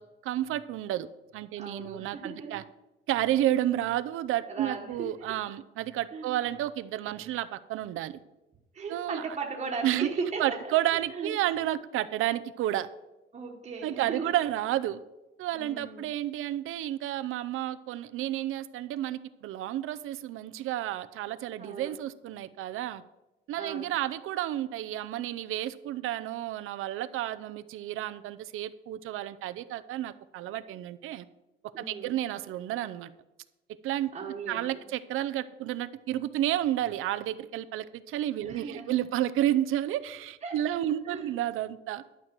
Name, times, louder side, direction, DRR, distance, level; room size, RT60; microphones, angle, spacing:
voice 1, 0.0-2.6 3.1-8.2 8.9-9.2 9.8-10.1 10.4-12.9 13.8-15.0 15.4-23.0 23.5-31.2 31.8-33.1 33.8-34.1 34.5-42.0, right 13 dB, 90° right, 13 dB, 0.6 m, -31 dB
voice 2, 1.6-2.6 4.5-5.4 6.1-6.4 8.7-11.3 13.3-14.4 15.5-16.1 21.6-21.9 23.5-23.9 31.7-32.1 34.1-34.8 38.4-39.0 40.4-40.6 41.1-41.3, right 4 dB, 35° right, -2 dB, 1.2 m, -37 dB
11.5 x 4.7 x 7.4 m, 0.99 s
cardioid pair, 140°, 20 cm